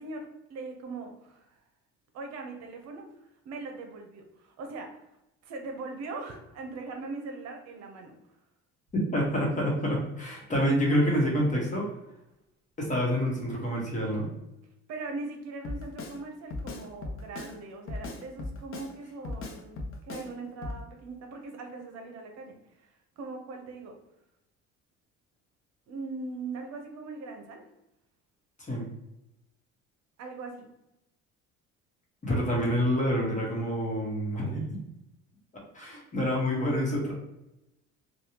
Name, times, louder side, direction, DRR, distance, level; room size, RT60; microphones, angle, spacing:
voice 1, 0.0-1.6 2.1-5.0 5.4-8.2 14.9-24.0 25.9-27.6 30.2-30.7, right 3 dB, 65° right, 3 dB, 0.7 m, -40 dB
voice 2, 9.1-11.9 12.8-14.3 28.6-28.9 32.2-34.8 35.7-37.1, equal, 25° left, -3 dB, 1.1 m, -27 dB
Drum kit, 15.6-16.2 16.5-17.6 17.9-18.9 19.2-20.3 20.6-20.8, left 2 dB, 45° left, 0.6 m, -37 dB
3.3 x 2.3 x 2.8 m, 0.89 s
cardioid pair, 110°, 29 cm